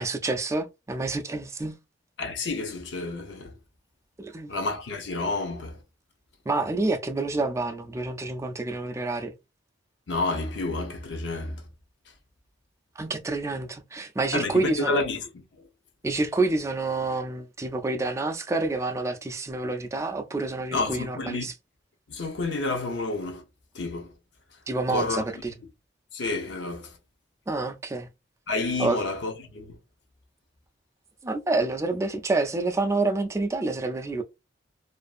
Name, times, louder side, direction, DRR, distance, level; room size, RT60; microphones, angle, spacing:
voice 1, 0.0-1.7 4.2-4.5 6.5-9.3 13.0-14.9 16.0-21.5 24.7-25.5 27.5-28.1 28.8-29.0 31.2-34.2, right 2 dB, 15° right, 0.3 m, -28 dB
voice 2, 2.2-3.5 4.5-5.8 10.1-11.7 14.3-15.7 20.7-21.5 22.1-23.5 23.7-24.1 24.9-25.3 26.1-27.0 28.5-29.8, left 3 dB, 70° left, 0.6 m, -30 dB
2.5 x 2.4 x 2.4 m
head